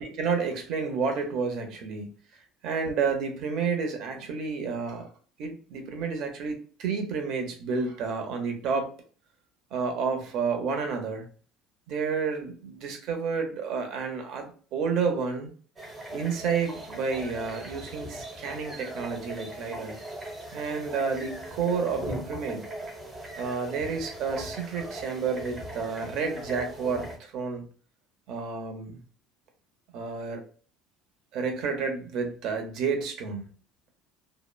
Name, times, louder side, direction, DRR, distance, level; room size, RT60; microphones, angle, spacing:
voice 1, 0.0-2.1 2.6-5.1 5.4-8.9 9.7-11.2 11.9-15.5 16.1-20.0 20.5-22.6 23.4-27.6 28.3-29.0 29.9-30.4 31.3-33.5, right 5 dB, 65° right, 5 dB, 0.7 m, -30 dB
sound 1, 15.8-27.2, right 1 dB, 25° right, 0.7 m, -39 dB
2.8 x 2.1 x 2.2 m, 0.40 s
cardioid pair, 130°, 0 cm